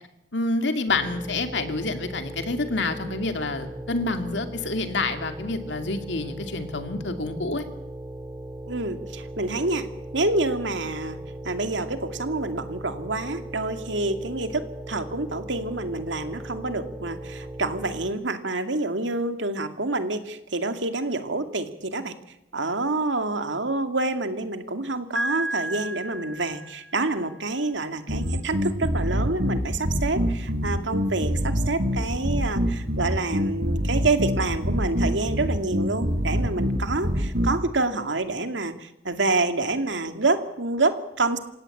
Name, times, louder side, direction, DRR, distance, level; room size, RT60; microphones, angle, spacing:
voice 1, 0.3-7.6, left 3 dB, 75° left, 7 dB, 2.5 m, -28 dB
sound 1, 0.9-18.1, right 1 dB, 20° right, 3.6 m, -38 dB
voice 2, 8.7-9.9 10.1-11.2 11.4-22.1 22.5-41.4, right 2 dB, 90° right, 7 dB, 2.4 m, -27 dB
Piano, 25.2-27.1, right 1 dB, 5° left, 3.3 m, -31 dB
sound 2, 28.1-37.6, equal, 60° right, 4.3 m, -25 dB
27.5 x 17.0 x 8.6 m, 0.86 s
head